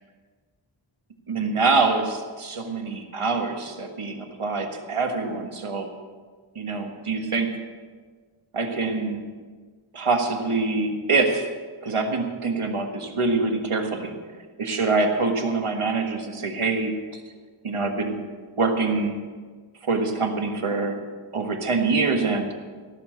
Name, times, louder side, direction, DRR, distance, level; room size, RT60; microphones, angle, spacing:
voice 1, 1.3-5.9 6.5-7.6 8.5-9.2 9.9-11.5 11.8-14.1 14.6-17.2 17.6-18.3 18.6-19.2 19.8-21.0 21.3-22.5, right 3 dB, 90° right, 4 dB, 1.6 m, -25 dB
16.5 x 7.0 x 7.9 m, 1.5 s
wide cardioid pair, 60°, 49 cm